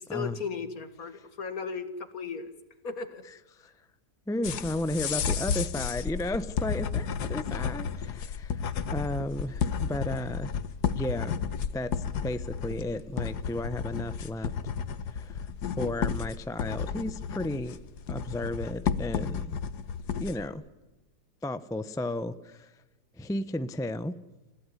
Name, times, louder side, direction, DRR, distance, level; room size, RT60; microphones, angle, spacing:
voice 1, 0.0-2.5 2.8-3.2, left 5 dB, 60° left, 11 dB, 2.3 m, -36 dB
voice 2, 4.3-8.6 8.9-10.5 10.9-11.4 11.7-14.5 15.1-15.4 15.8-17.8 18.1-19.6 20.2-20.6 21.4-22.7 23.2-24.1, left 1 dB, 5° left, 12 dB, 0.6 m, -33 dB
sound 1, 4.4-20.5, left 7 dB, 80° left, 1.6 m, -32 dB
29.0 x 15.5 x 9.9 m, 1.1 s
omnidirectional pair, 1.7 m